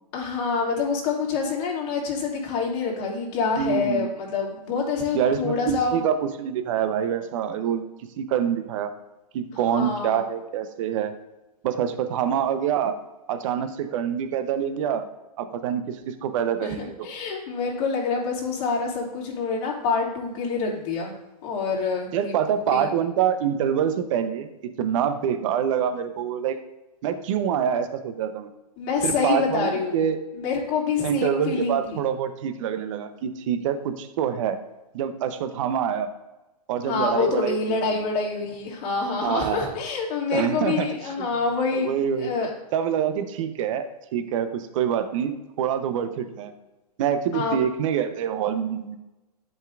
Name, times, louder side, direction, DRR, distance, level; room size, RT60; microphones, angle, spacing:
voice 1, 0.1-6.0 9.7-10.2 16.6-21.1 21.4-22.3 22.7-22.9 28.8-30.0 30.3-32.0 36.8-41.9 42.2-42.5 47.3-47.6, left 4 dB, 45° left, -3 dB, 2.6 m, -26 dB
voice 2, 3.6-4.1 5.1-7.9 8.2-8.9 9.3-11.1 11.6-13.0 13.3-15.0 15.4-17.1 22.1-24.5 24.8-26.6 27.0-28.5 29.0-30.2 31.0-34.6 34.9-36.1 36.7-38.0 39.2-39.7 40.3-40.9 41.2-41.3 41.8-42.3 42.7-45.3 45.6-46.5 47.0-49.0, right 8 dB, 55° right, 10 dB, 0.9 m, -26 dB
10.5 x 5.4 x 2.5 m, 1.0 s
hypercardioid pair, 120°, 20 cm